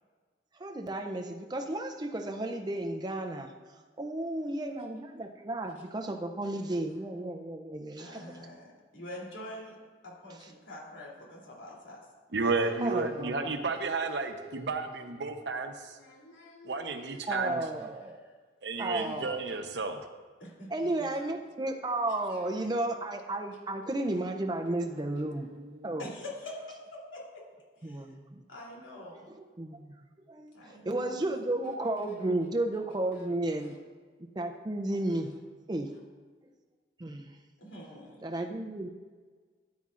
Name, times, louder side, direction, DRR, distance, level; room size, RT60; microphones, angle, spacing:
voice 1, 0.6-3.5 4.0-8.2 12.8-13.6 17.3-18.2 18.8-19.4 20.7-25.5 25.8-26.1 27.8-28.4 29.3-29.9 30.3-33.8 34.4-35.3 35.7-35.9 37.0-37.3 38.2-38.9, right 2 dB, 20° right, 3 dB, 0.5 m, -33 dB
voice 2, 8.0-9.7 10.0-12.0 12.4-13.0 13.7-15.2 15.9-17.2 18.3-18.4 18.8-19.5 20.4-20.7 21.0-21.2 22.3-22.4 24.9-25.0 26.0-27.4 27.8-28.0 28.5-29.3 30.5-31.1 33.6-33.7 37.6-38.2, left 1 dB, 85° left, -3 dB, 3.0 m, -46 dB
voice 3, 12.3-15.9 16.6-17.6 18.6-20.0 25.5-25.8, right 3 dB, 65° right, 6 dB, 0.8 m, -32 dB
13.5 x 9.4 x 2.5 m, 1.5 s
head